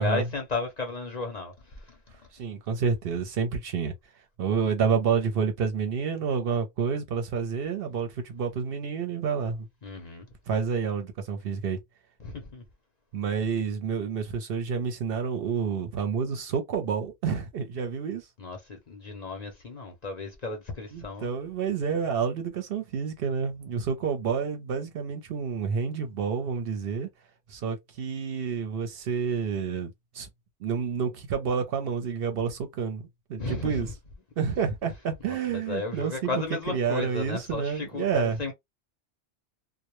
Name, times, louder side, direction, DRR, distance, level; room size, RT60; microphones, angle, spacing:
voice 1, 0.0-2.0 9.8-10.3 12.2-12.6 18.4-21.3 33.4-33.9 35.3-38.5, left 3 dB, 45° left, 0.6 m, -34 dB
voice 2, 2.3-3.9 4.4-9.7 10.5-11.8 13.1-18.2 20.9-27.1 27.5-30.3 30.6-33.9 34.4-38.4, right 6 dB, 65° right, 0.7 m, -29 dB
2.1 x 2.1 x 2.9 m
omnidirectional pair, 1.1 m